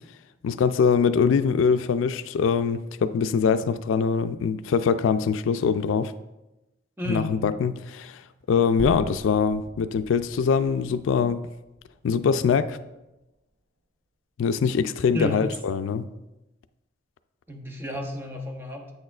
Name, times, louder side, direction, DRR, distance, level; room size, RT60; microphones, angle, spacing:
voice 1, 0.4-6.1 7.1-8.2 8.5-11.4 12.0-12.8 14.4-16.1, left 6 dB, 90° left, 12 dB, 0.3 m, -23 dB
voice 2, 7.0-7.4 15.1-15.4 17.5-18.9, equal, 10° right, 3 dB, 0.7 m, -32 dB
sound 1, 8.8-13.0, right 1 dB, 60° right, 0.7 m, -42 dB
8.1 x 6.4 x 2.4 m, 0.98 s
head